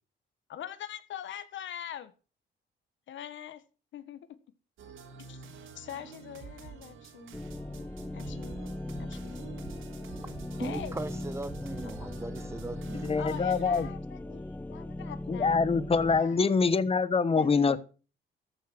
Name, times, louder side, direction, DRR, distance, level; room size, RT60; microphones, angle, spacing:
voice 1, 0.5-2.1 3.1-3.6 3.9-4.4 5.2-5.4 5.7-7.4 8.1-8.6 9.0-9.4 10.6-11.0 11.7-12.1 13.2-15.7 16.1-16.5 17.3-17.8, left 10 dB, 70° left, 1.5 m, -43 dB
sound 1, 4.8-13.9, right 6 dB, 85° right, 3.7 m, -48 dB
sound 2, 7.3-16.2, left 1 dB, 10° left, 0.8 m, -39 dB
voice 2, 10.6-13.1, right 2 dB, 15° right, 1.3 m, -38 dB
voice 3, 13.0-13.9 15.3-17.8, left 4 dB, 30° left, 1.0 m, -25 dB
14.0 x 7.6 x 6.2 m
cardioid pair, 90°, 20 cm